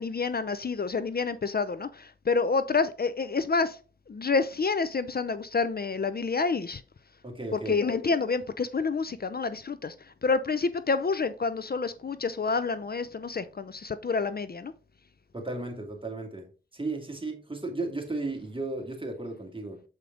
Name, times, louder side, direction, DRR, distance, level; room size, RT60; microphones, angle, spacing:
voice 1, 0.0-3.8 4.1-6.8 7.5-9.9 10.2-14.7, left 4 dB, 50° left, 0.6 m, -28 dB
voice 2, 7.2-7.8 15.3-19.8, right 2 dB, 25° right, 2.3 m, -35 dB
7.4 x 5.0 x 3.9 m
cardioid pair, 50°, 21 cm